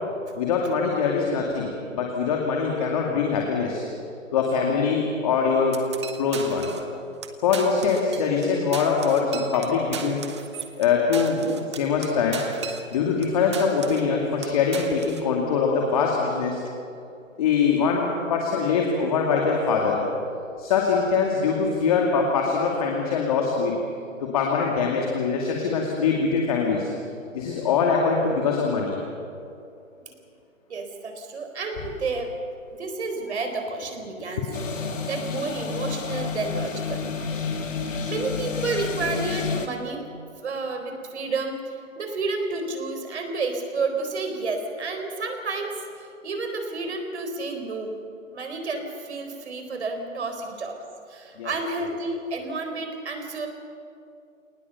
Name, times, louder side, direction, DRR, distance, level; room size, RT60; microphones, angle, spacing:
voice 1, 0.4-3.9 4.3-5.8 6.2-6.7 7.4-10.2 10.8-12.4 12.9-16.6 17.4-20.0 20.6-23.7 24.2-26.9 27.3-28.9 34.5-34.6 51.4-51.5, left 5 dB, 25° left, -1 dB, 2.5 m, -23 dB
sound 1, 5.7-6.9 7.2-7.3 7.5-8.5 8.7-13.3 13.5-14.1 14.4-15.3, right 7 dB, 20° right, 0.9 m, -37 dB
voice 2, 30.7-32.3 32.7-34.5 35.1-37.0 37.6-37.7 38.0-40.1 40.4-45.7 46.0-47.9 48.3-50.8 51.1-53.5, right 3 dB, 55° right, 5 dB, 4.2 m, -30 dB
sound 2, 34.5-39.7, left 5 dB, 70° left, 2.7 m, -30 dB
26.5 x 19.0 x 7.1 m, 2.6 s
hypercardioid pair, 165°, 40 cm